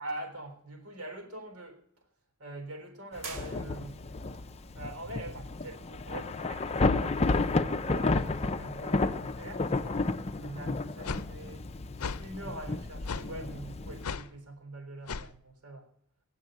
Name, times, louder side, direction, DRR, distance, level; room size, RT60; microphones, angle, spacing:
voice 1, 0.0-1.8 2.4-4.0 4.8-11.7 12.2-15.9, right 1 dB, 80° right, 4 dB, 3.7 m, -44 dB
Thunder / Rain, 3.2-14.0, left 3 dB, 30° left, 0.6 m, -32 dB
sound 1, 3.2-4.2, right 4 dB, 65° right, 2.3 m, -44 dB
sound 2, 11.0-11.3 12.0-12.2 13.1-13.3 14.0-14.3 15.1-15.3, left 5 dB, 80° left, 0.6 m, -35 dB
19.5 x 7.4 x 9.2 m, 0.70 s
head